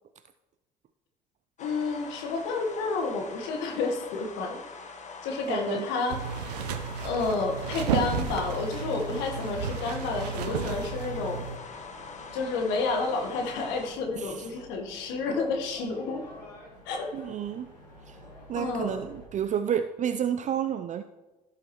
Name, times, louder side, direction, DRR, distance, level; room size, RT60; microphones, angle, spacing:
voice 1, 1.6-4.6 5.2-6.2 7.0-11.4 12.3-16.2 16.9-17.1 18.5-19.0, left 4 dB, 60° left, 3 dB, 1.4 m, -30 dB
sound 1, 1.6-13.9, left 4 dB, 35° left, 1.3 m, -44 dB
voice 2, 5.5-5.8 14.1-14.5 17.1-17.7 18.1-18.2 18.5-21.0, right 9 dB, 35° right, 9 dB, 0.5 m, -30 dB
sound 2, 6.1-11.6, right 7 dB, 75° right, 0.8 m, -32 dB
sound 3, 8.1-19.3, left 1 dB, 80° left, 2.3 m, -50 dB
16.0 x 5.7 x 3.1 m, 1.1 s
figure-of-eight pair, 55°, 21 cm